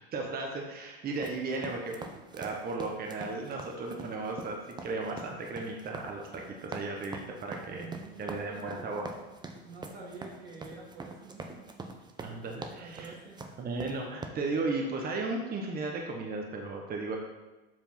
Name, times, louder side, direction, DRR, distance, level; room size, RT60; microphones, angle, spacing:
voice 1, 0.1-4.6 4.8-7.9 8.2-9.0 12.2-13.1 13.6-17.2, right 3 dB, 30° right, 1 dB, 1.0 m, -35 dB
sound 1, 1.1-14.3, right 3 dB, 15° right, 0.6 m, -44 dB
voice 2, 7.7-9.3 9.6-11.7 12.7-13.4, right 3 dB, 80° right, -3 dB, 2.3 m, -47 dB
7.5 x 3.4 x 5.8 m, 1.1 s
supercardioid pair, 105°, 31 cm